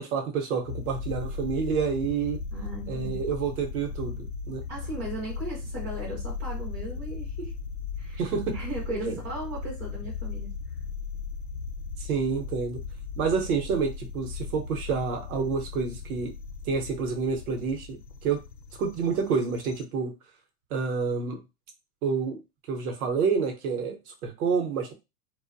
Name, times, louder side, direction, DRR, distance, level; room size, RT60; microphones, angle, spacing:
voice 1, 0.0-2.4 2.9-4.6 8.2-8.6 8.9-9.2 12.0-12.8 13.2-16.3 16.7-18.4 18.8-20.1 20.7-21.4 22.0-22.4 22.7-24.9, right 5 dB, 60° right, 3 dB, 0.8 m, -28 dB
sound 1, 0.6-19.8, left 5 dB, 80° left, 0.7 m, -37 dB
voice 2, 2.5-3.2 4.7-7.5 8.0-8.2 8.5-10.5, right 1 dB, 15° right, -5 dB, 0.4 m, -37 dB
2.4 x 2.2 x 2.5 m, 0.25 s
supercardioid pair, 155°, 49 cm